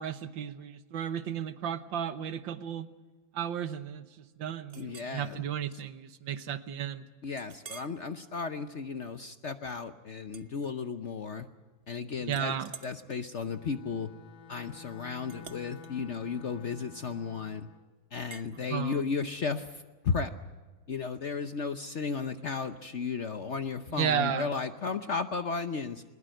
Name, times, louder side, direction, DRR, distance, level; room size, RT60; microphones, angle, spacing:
voice 1, 0.0-2.9 3.3-7.1 12.2-12.7 18.7-19.1 23.9-24.5, right 9 dB, 80° right, 12 dB, 1.8 m, -34 dB
voice 2, 4.7-5.4 7.2-11.5 11.9-12.5 12.8-14.1 14.5-17.7 18.1-20.3 20.9-26.0, left 5 dB, 50° left, 9 dB, 0.9 m, -34 dB
Chink clink, 4.7-5.2 5.7-5.9 6.3-6.4 7.4-8.0 8.5-8.8 10.3-11.2 11.5-11.9 12.3-17.4 18.3-18.5, right 6 dB, 45° right, 0.8 m, -51 dB
Bowed string instrument, 13.4-17.9, left 8 dB, 90° left, 1.9 m, -51 dB
21.0 x 20.5 x 7.8 m, 1.3 s
omnidirectional pair, 2.0 m